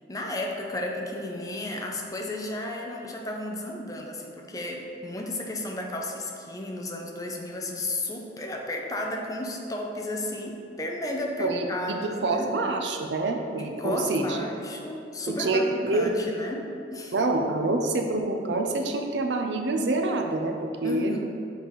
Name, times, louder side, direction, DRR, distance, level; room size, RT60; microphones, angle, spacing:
voice 1, 0.1-12.5 13.6-16.7 16.9-17.1 20.8-21.2, left 1 dB, 20° left, 1 dB, 0.6 m, -33 dB
voice 2, 11.4-14.4 15.4-16.2 17.1-21.2, right 2 dB, 80° right, 3 dB, 0.6 m, -26 dB
6.4 x 4.8 x 4.0 m, 2.6 s
head